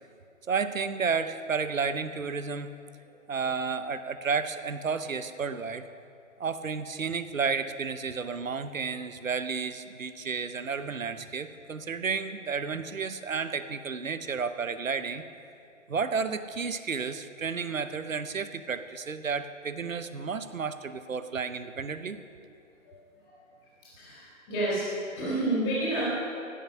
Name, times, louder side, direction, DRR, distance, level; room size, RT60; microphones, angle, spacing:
voice 1, 0.5-2.7 3.3-5.9 6.4-15.2 15.9-22.2, right 5 dB, 70° right, 11 dB, 0.8 m, -32 dB
voice 2, 22.8-23.4 23.9-24.9 25.2-26.1, right 1 dB, 15° left, -7 dB, 3.6 m, -30 dB
16.0 x 7.4 x 5.7 m, 2.6 s
figure-of-eight pair, 150°, 41 cm